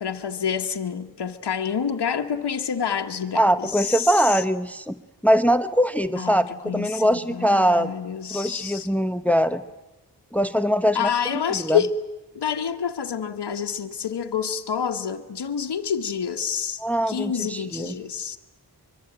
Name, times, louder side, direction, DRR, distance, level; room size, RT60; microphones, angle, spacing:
voice 1, 0.0-4.4 6.1-8.9 10.9-11.9 12.3-18.4, left 7 dB, 80° left, 4 dB, 1.3 m, -28 dB
voice 2, 3.3-4.9 5.2-6.5 6.7-7.9 8.3-9.6 10.3-11.0 11.5-11.8 16.8-17.9, equal, 5° left, 12 dB, 0.9 m, -21 dB
24.5 x 23.0 x 8.9 m, 1.1 s
cardioid pair, 60°, 40 cm